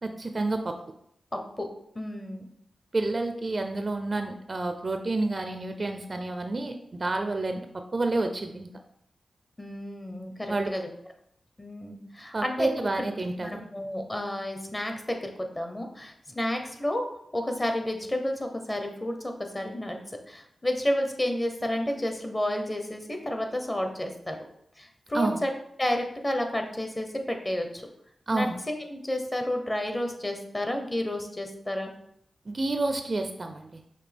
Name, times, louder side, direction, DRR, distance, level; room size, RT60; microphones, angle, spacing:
voice 1, 0.0-0.8 2.9-8.7 10.5-10.7 12.3-13.6 25.1-25.4 28.3-28.6 32.5-33.8, right 2 dB, 40° right, 6 dB, 0.4 m, -29 dB
voice 2, 1.3-1.7 1.9-2.5 9.6-10.9 11.6-12.7 13.4-17.0 17.3-24.4 24.8-25.5 25.8-27.9 28.3-31.9, left 1 dB, 25° left, 4 dB, 0.8 m, -31 dB
5.9 x 2.7 x 3.4 m, 0.71 s
cardioid pair, 75°, 0 cm